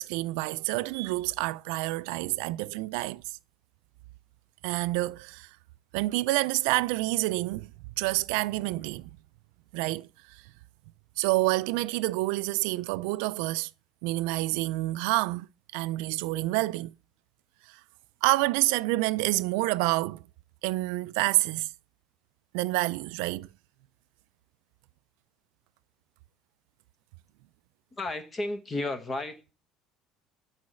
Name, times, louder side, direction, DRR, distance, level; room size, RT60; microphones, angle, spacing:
voice 1, 0.0-3.2 4.6-5.5 5.9-7.7 8.0-9.1 9.7-10.4 11.2-13.7 14.0-15.5 15.7-16.9 17.7-17.8 18.2-20.2 20.6-21.7 22.5-23.5, right 20 dB, 85° right, 0.4 m, -28 dB
voice 2, 27.9-29.5, left 2 dB, 20° left, 1.0 m, -33 dB
8.5 x 4.1 x 6.3 m
cardioid pair, 170°, 0 cm